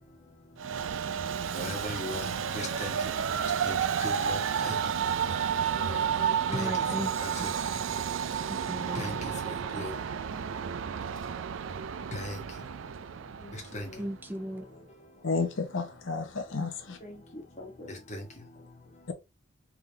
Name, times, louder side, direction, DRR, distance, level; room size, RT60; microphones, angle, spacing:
Train, 0.6-14.1, right 7 dB, 80° right, 0.4 m, -31 dB
voice 1, 1.5-2.3 2.5-2.9 3.6-4.4 4.6-4.7 5.8-6.7 7.2-7.3 8.9-9.2 9.5-9.9 12.1-12.4 13.4-13.9 17.0-17.2 17.6-17.7 18.1-18.2, left 1 dB, 40° left, 1.5 m, -38 dB
voice 2, 6.5-7.1 7.4-7.5 8.5-9.2 14.0-14.6, equal, 10° right, 0.4 m, -36 dB
voice 3, 15.2-17.0, left 4 dB, 85° left, 0.9 m, -31 dB
3.7 x 3.5 x 3.3 m
head